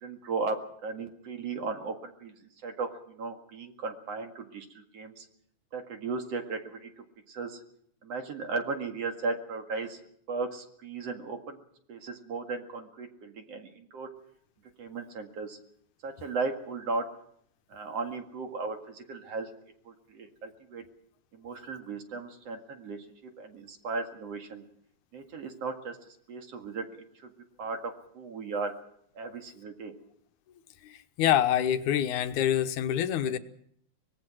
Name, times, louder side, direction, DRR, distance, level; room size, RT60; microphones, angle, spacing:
voice 1, 0.0-0.6 0.8-2.3 2.6-4.7 4.9-5.2 5.7-6.9 7.3-7.6 8.0-10.0 10.3-11.6 11.9-14.1 14.8-15.6 16.0-17.0 17.7-19.5 19.9-20.8 21.3-23.0 23.4-24.6 25.1-26.0 26.3-26.8 27.6-28.7 29.2-29.9, right 4 dB, 55° right, 5 dB, 2.9 m, -36 dB
voice 2, 30.8-33.4, left 10 dB, 75° left, 9 dB, 2.5 m, -26 dB
24.0 x 19.5 x 6.2 m, 0.67 s
omnidirectional pair, 3.6 m